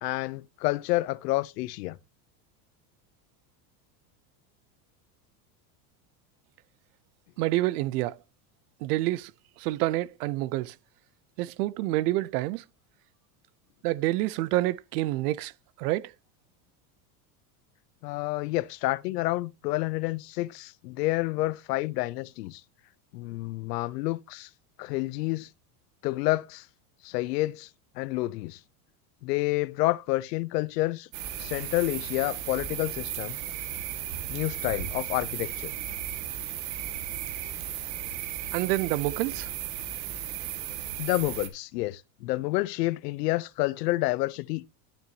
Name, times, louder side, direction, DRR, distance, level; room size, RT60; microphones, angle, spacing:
voice 1, 0.0-2.0 18.0-22.6 23.1-24.5 24.8-25.5 26.0-26.7 27.0-27.7 28.0-28.6 29.2-31.1 31.4-33.4 34.3-35.7 41.0-44.7, left 19 dB, 90° left, 0.8 m, -29 dB
voice 2, 7.4-8.2 8.8-9.3 9.6-10.8 11.4-12.6 13.8-15.5 15.8-16.1 38.5-39.5, right 17 dB, 75° right, 0.7 m, -28 dB
sound 1, 31.1-41.5, right 11 dB, 60° right, 2.0 m, -35 dB
11.5 x 6.9 x 2.8 m
supercardioid pair, 150°, 47 cm